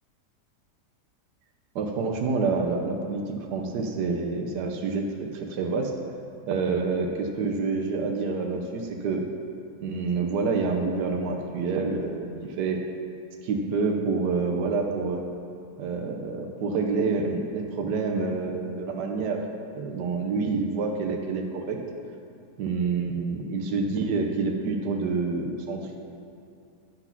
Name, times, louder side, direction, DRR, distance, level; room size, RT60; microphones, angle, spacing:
voice 1, 1.7-5.9 6.5-9.3 9.8-12.8 13.4-15.3 15.8-19.4 19.7-21.8 22.6-26.0, right 4 dB, 80° right, 2 dB, 1.4 m, -27 dB
10.5 x 6.0 x 5.7 m, 2.5 s
omnidirectional pair, 1.8 m